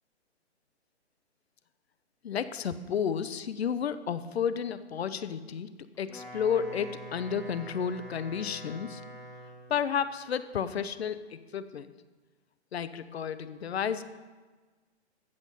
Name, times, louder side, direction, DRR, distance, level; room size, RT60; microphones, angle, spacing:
voice 1, 2.2-5.7 6.0-9.0 9.7-11.9 12.7-14.0, left 7 dB, 65° left, 13 dB, 0.9 m, -32 dB
Wind instrument woodwind instrument, 5.9-9.8, equal, ahead, 2.7 m, -45 dB
15.0 x 6.2 x 7.7 m, 1.3 s
hypercardioid pair, 165°, 34 cm